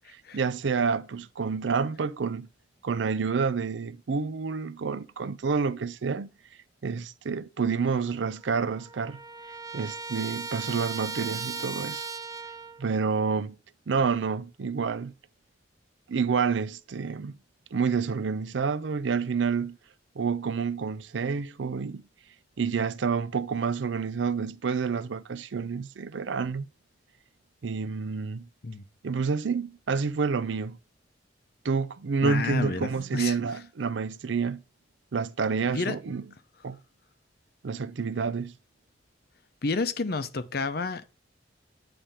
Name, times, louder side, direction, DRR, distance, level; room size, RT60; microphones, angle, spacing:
voice 1, 0.3-2.5 2.8-6.3 6.8-9.2 9.7-12.0 12.8-13.6 13.9-15.1 16.1-17.4 17.7-19.8 20.2-22.0 22.6-26.7 27.6-28.5 29.0-30.8 31.6-34.6 35.1-36.2 36.6-36.8 37.6-38.5, right 5 dB, 80° right, 0.5 m, -28 dB
Trumpet, 8.1-8.2 8.4-12.8, right 4 dB, 20° right, 0.5 m, -37 dB
voice 2, 32.2-33.4 35.7-36.0 39.6-41.1, left 3 dB, 55° left, 0.7 m, -30 dB
9.0 x 3.3 x 5.6 m
head